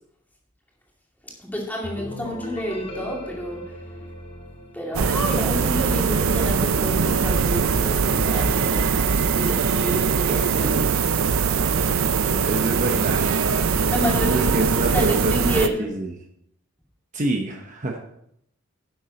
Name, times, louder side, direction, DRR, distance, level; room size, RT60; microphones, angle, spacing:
voice 1, 1.4-3.8 4.7-10.9 12.2-12.5 13.9-15.9, left 1 dB, 10° left, -3 dB, 2.4 m, -30 dB
sound 1, 1.8-5.5, left 1 dB, 25° left, 1.5 m, -37 dB
sound 2, 4.9-15.7, right 5 dB, 75° right, 0.6 m, -21 dB
voice 2, 12.4-13.3 14.3-16.1 17.1-18.0, right 2 dB, 35° right, 2 dB, 0.9 m, -26 dB
11.0 x 7.4 x 4.0 m, 0.75 s
head